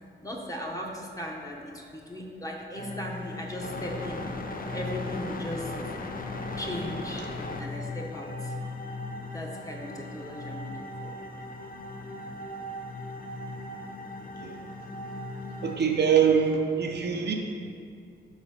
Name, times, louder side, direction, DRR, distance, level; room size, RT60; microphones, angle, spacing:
voice 1, 0.2-4.3 4.7-5.9 6.6-7.3 7.6-8.5 9.2-11.1 15.8-15.9, left 1 dB, 15° left, -1 dB, 1.1 m, -37 dB
sound 1, 2.8-15.8, left 2 dB, 45° left, 0.6 m, -37 dB
voice 2, 15.6-17.3, right 7 dB, 55° right, 2 dB, 0.7 m, -23 dB
5.6 x 4.1 x 5.3 m, 2.3 s
cardioid pair, 60°, 21 cm